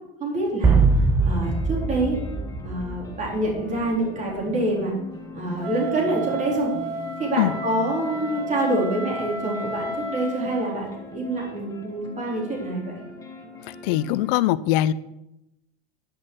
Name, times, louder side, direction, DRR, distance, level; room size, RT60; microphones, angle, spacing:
voice 1, 0.2-0.8 1.2-2.2 2.6-4.9 5.3-6.7 7.2-12.9, right 1 dB, 25° right, -3 dB, 4.1 m, -26 dB
sound 1, 0.6-3.5, right 4 dB, 10° right, 0.3 m, -22 dB
sound 2, 1.2-14.3, left 2 dB, 10° left, 1.9 m, -41 dB
Wind instrument woodwind instrument, 5.6-10.6, right 2 dB, 65° right, 1.9 m, -32 dB
voice 2, 13.6-14.9, left 14 dB, 60° left, 18 dB, 0.6 m, -22 dB
10.5 x 6.5 x 6.3 m, 0.89 s
supercardioid pair, 150°, 31 cm